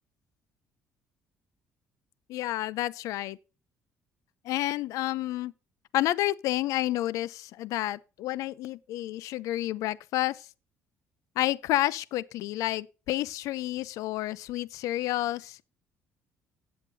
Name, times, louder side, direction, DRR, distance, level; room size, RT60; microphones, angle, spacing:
voice 1, 2.3-3.4 4.4-5.5 5.9-10.5 11.4-15.6, left 15 dB, 80° left, 0.6 m, -30 dB
17.5 x 7.4 x 2.8 m
cardioid pair, 110°, 6 cm